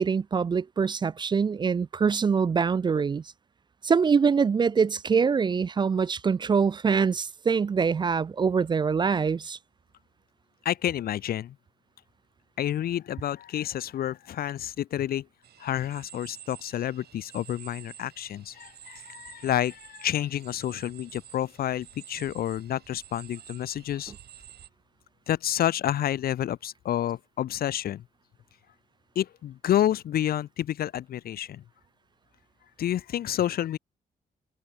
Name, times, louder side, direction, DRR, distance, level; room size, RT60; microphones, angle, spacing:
voice 1, 0.0-3.2 3.8-9.6, right 5 dB, 25° right, 0.4 m, -24 dB
voice 2, 10.6-11.5 12.6-15.3 15.6-24.1 25.3-28.0 29.2-31.6 32.8-33.8, left 11 dB, 65° left, 0.6 m, -29 dB
sound 1, 15.4-24.7, right 10 dB, 75° right, 5.7 m, -50 dB
wide cardioid pair, 160°, 17 cm